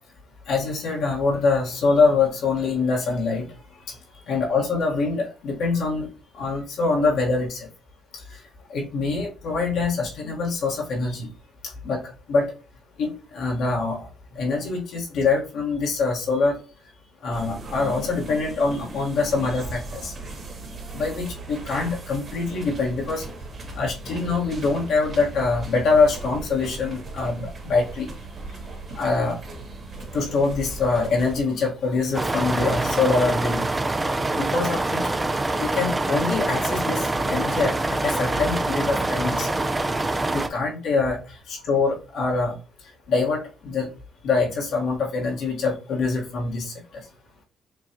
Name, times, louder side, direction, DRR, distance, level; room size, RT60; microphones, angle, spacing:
voice 1, 0.5-3.4 3.9-4.0 4.3-6.1 6.4-7.7 8.7-11.3 11.8-12.0 12.3-12.5 13.0-14.0 14.3-16.6 17.2-20.1 20.9-23.2 23.7-28.1 28.9-29.4 30.1-35.0 35.6-37.7 38.0-39.5 40.3-42.5 43.1-43.9 44.2-46.7, left 4 dB, 80° left, -3 dB, 1.6 m, -24 dB
sound 1, 17.3-31.4, right 2 dB, 40° right, 2.1 m, -38 dB
sound 2, 32.1-40.5, right 2 dB, 20° right, 0.5 m, -25 dB
7.0 x 2.4 x 2.9 m, 0.35 s
cardioid pair, 90°, 0 cm